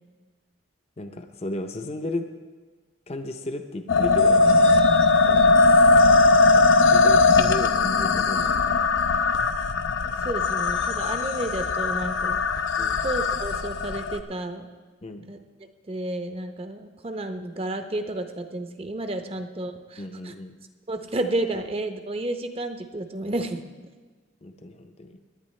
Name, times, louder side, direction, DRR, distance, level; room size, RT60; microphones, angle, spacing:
voice 1, 1.0-2.3 3.1-4.6 5.3-5.6 6.9-8.8 12.8-13.0 15.0-15.3 20.0-20.6 24.4-25.2, left 1 dB, 35° left, 6 dB, 0.6 m, -34 dB
sound 1, 3.9-14.2, left 3 dB, 90° left, 0.6 m, -19 dB
voice 2, 10.0-12.4 13.0-14.7 15.3-15.4 15.9-20.3 20.9-23.7, right 1 dB, 30° right, 7 dB, 0.7 m, -31 dB
17.5 x 10.5 x 3.2 m, 1.4 s
head